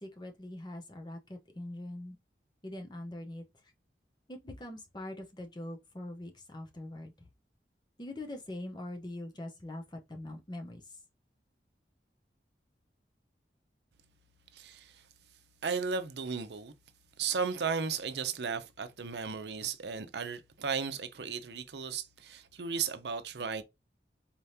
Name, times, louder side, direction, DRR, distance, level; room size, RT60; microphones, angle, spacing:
voice 1, 0.0-2.2 2.6-3.4 4.3-7.1 8.0-10.8, left 1 dB, 25° left, 0.8 m, -43 dB
voice 2, 14.5-15.0 15.6-16.7 17.2-23.6, right 5 dB, 75° right, 0.6 m, -35 dB
4.4 x 3.5 x 2.8 m
head